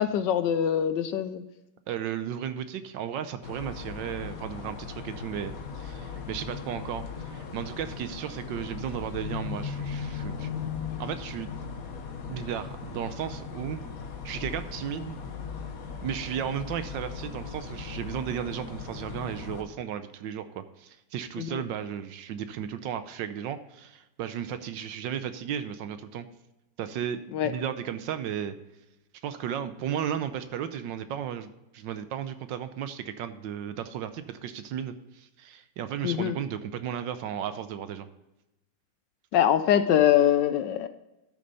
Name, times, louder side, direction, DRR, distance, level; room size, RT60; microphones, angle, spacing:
voice 1, 0.0-1.4 21.4-21.6 27.3-27.5 36.0-36.4 39.3-40.9, left 10 dB, 70° left, 11 dB, 1.1 m, -23 dB
voice 2, 1.9-10.5 11.0-11.5 12.3-13.8 14.2-15.2 16.0-26.3 26.8-28.5 29.2-38.1, right 9 dB, 70° right, 11 dB, 1.3 m, -34 dB
sound 1, 3.4-19.6, left 6 dB, 50° left, 1.4 m, -38 dB
12.0 x 6.6 x 4.0 m, 0.96 s
omnidirectional pair, 2.2 m